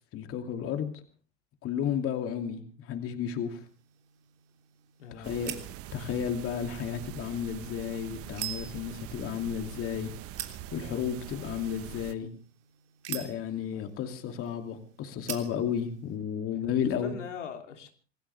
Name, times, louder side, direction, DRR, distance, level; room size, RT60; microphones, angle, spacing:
voice 1, 0.1-0.9 1.6-3.6 5.2-5.5 5.9-10.1 10.7-12.3 13.1-17.1, left 8 dB, 40° left, 6 dB, 2.6 m, -32 dB
sound 1, 3.5-16.2, right 12 dB, 70° right, 3.4 m, -46 dB
voice 2, 5.0-5.7 13.7-13.8 16.8-17.9, left 7 dB, 90° left, 4 dB, 3.1 m, -42 dB
sound 2, 5.2-12.1, right 12 dB, 40° right, 1.2 m, -44 dB
26.5 x 16.0 x 3.4 m, 0.38 s
hypercardioid pair, 105°, 35 cm